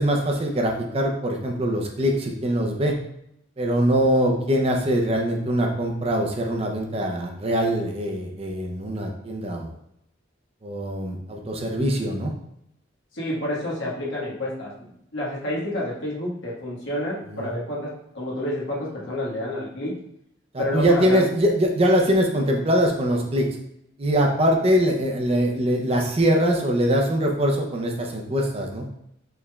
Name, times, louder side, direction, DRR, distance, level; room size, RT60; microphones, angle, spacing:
voice 1, 0.0-3.0 3.6-9.8 10.6-12.3 17.3-17.5 20.5-23.5 24.0-28.9, equal, 30° right, 1 dB, 0.5 m, -22 dB
voice 2, 13.1-19.9 20.6-21.2, left 1 dB, 85° left, -5 dB, 1.4 m, -29 dB
4.6 x 3.2 x 2.3 m, 0.76 s
head